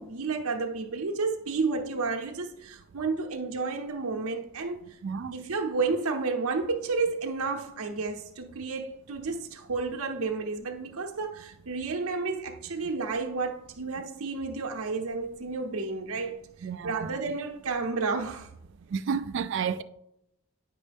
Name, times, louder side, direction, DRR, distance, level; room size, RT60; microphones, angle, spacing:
voice 1, 0.0-5.0 5.3-18.5, right 4 dB, 85° right, 0.7 m, -31 dB
voice 2, 5.0-5.3 16.6-17.1 18.9-19.8, right 6 dB, 55° right, 0.3 m, -31 dB
9.6 x 5.3 x 3.4 m
head